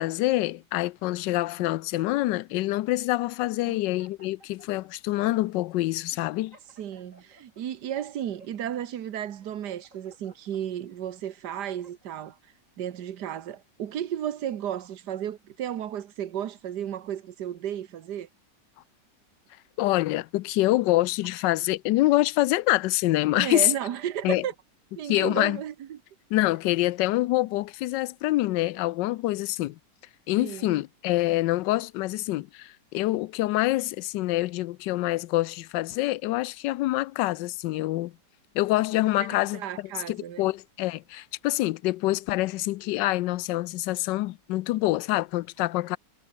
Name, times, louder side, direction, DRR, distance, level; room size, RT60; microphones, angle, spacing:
voice 1, 0.0-6.6 19.8-23.7 24.2-24.5 25.0-25.6 26.3-29.8 30.3-38.1 38.5-46.0, left 17 dB, 85° left, 1.2 m, -26 dB
sound 1, 1.6-2.9 3.5-3.6 3.8-4.9 5.5-5.6 6.1-7.6 8.1-8.8 9.4-10.6 11.2-12.2, right 2 dB, 45° right, 6.6 m, -58 dB
voice 2, 6.8-12.4 12.8-18.3 23.4-24.5 25.0-26.0 30.4-30.8 39.2-40.5, right 10 dB, 70° right, 1.7 m, -34 dB
omnidirectional pair, 1.9 m